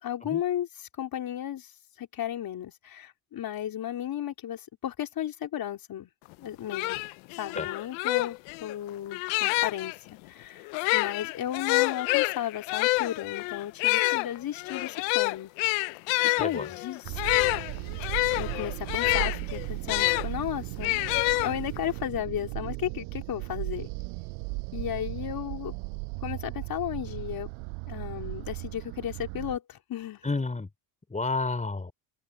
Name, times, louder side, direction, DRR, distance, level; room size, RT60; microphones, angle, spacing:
voice 1, 0.0-1.7 2.0-6.1 6.4-7.0 7.4-15.5 16.2-17.2 18.3-21.0 21.4-23.9 24.7-25.7 26.2-27.5 27.9-30.2, left 11 dB, 50° left, 4.2 m, -34 dB
sound 1, 6.3-6.4 6.7-10.0 10.7-20.3 20.8-21.9, left 27 dB, 80° left, 0.6 m, -27 dB
voice 2, 16.4-16.7 30.2-30.7 31.1-31.9, left 3 dB, 15° left, 4.9 m, -30 dB
sound 2, 17.0-29.6, right 36 dB, 85° right, 6.0 m, -36 dB
supercardioid pair, 100°, 46 cm